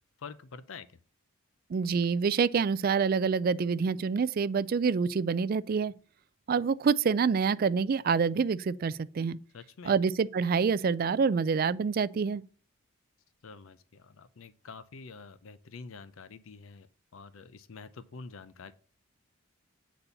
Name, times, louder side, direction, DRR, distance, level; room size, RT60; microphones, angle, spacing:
voice 1, 0.2-1.0 9.5-9.9 13.4-18.7, left 4 dB, 65° left, 0.5 m, -47 dB
voice 2, 1.7-5.9 6.5-9.4 9.8-12.4, right 5 dB, 45° right, 0.3 m, -27 dB
8.4 x 4.1 x 6.8 m
head